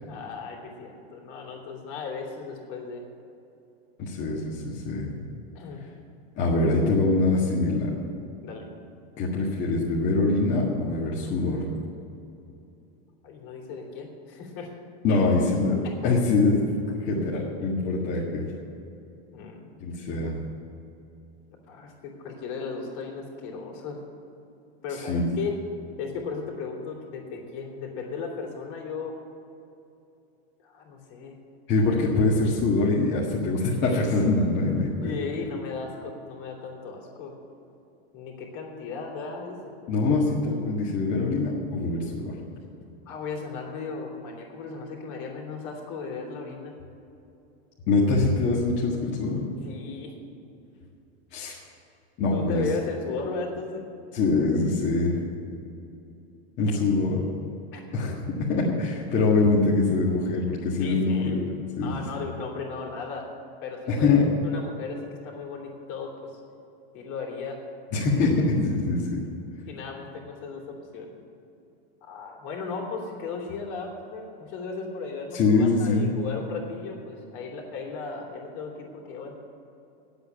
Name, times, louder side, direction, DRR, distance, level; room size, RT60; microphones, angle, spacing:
voice 1, 0.0-3.0 5.5-5.8 8.4-8.7 13.2-14.7 15.1-15.3 15.8-16.1 19.3-19.8 21.7-24.0 24.8-25.6 26.0-29.1 30.6-31.4 35.0-37.3 38.1-39.7 43.1-46.7 49.6-50.1 52.3-53.8 56.6-56.8 57.7-57.8 60.8-61.4 61.8-63.3 63.6-64.1 64.4-66.4 66.9-67.6 69.7-71.2 72.0-79.4, left 4 dB, 55° left, 0 dB, 3.0 m, -36 dB
voice 2, 4.0-5.1 6.4-7.9 9.2-11.6 15.0-16.6 17.0-18.5 19.8-20.4 25.1-25.3 31.7-34.9 39.9-42.4 47.9-49.5 51.3-51.6 52.2-52.6 54.1-55.2 56.6-57.2 57.9-58.1 58.4-62.0 63.9-64.3 67.9-69.2 75.3-76.1, left 3 dB, 35° left, -5 dB, 1.8 m, -24 dB
9.5 x 8.0 x 9.1 m, 2.8 s
supercardioid pair, 140°, 32 cm